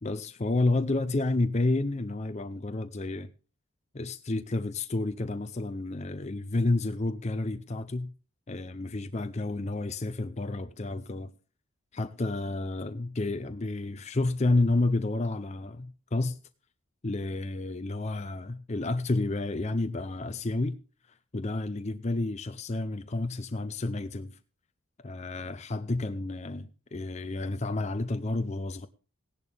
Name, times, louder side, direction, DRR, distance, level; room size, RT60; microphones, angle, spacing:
voice 1, 0.0-3.3 3.9-8.1 8.5-11.3 11.9-16.4 17.0-20.8 21.3-24.4 25.0-28.9, left 2 dB, 30° left, 0.6 m, -30 dB
16.5 x 11.0 x 3.4 m
head